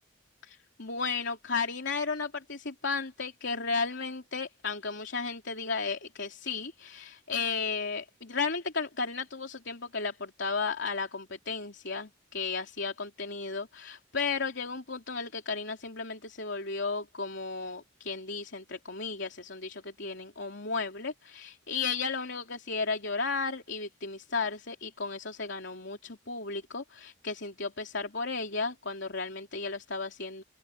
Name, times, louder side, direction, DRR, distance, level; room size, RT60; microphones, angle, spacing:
voice 1, 0.4-30.4, left 4 dB, 65° left, 3.3 m, -34 dB
open air
head